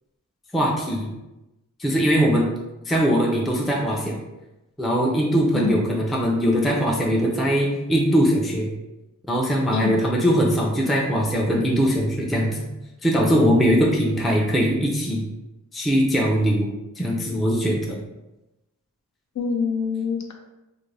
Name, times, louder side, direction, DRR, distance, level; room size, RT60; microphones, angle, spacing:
voice 1, 0.5-1.1 1.8-2.5 2.9-4.2 4.8-8.7 9.3-12.7 13.0-15.3 15.7-16.7 17.0-18.0, equal, ahead, -2 dB, 0.4 m, -21 dB
voice 2, 19.3-20.3, left 4 dB, 55° left, 2 dB, 0.6 m, -25 dB
2.5 x 2.1 x 3.2 m, 0.99 s
cardioid pair, 60°, 33 cm